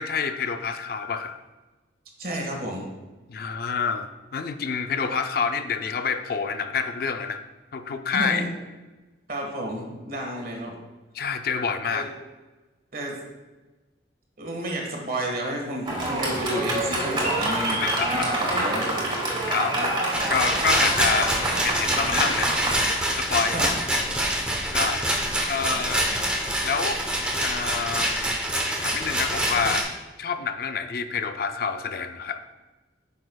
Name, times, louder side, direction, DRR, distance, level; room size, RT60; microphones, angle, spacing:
voice 1, 0.0-1.4 3.3-7.4 7.7-8.4 11.1-12.0 17.8-18.3 19.5-20.0 20.3-24.0 24.7-25.1 25.5-26.0 26.6-27.0 27.4-28.4 28.8-29.9 30.2-32.4, left 5 dB, 55° left, 8 dB, 0.4 m, -28 dB
voice 2, 2.2-2.9 8.1-8.5 9.3-10.7 11.9-12.1 12.9-13.2 14.4-17.8 18.1-18.9 23.5-23.7, right 1 dB, 50° right, 0 dB, 1.5 m, -31 dB
Fireworks, 15.8-22.7, right 1 dB, 25° right, 1.7 m, -27 dB
Rattle, 20.1-29.8, right 1 dB, 5° right, 0.8 m, -25 dB
8.8 x 6.3 x 2.3 m, 1.2 s
head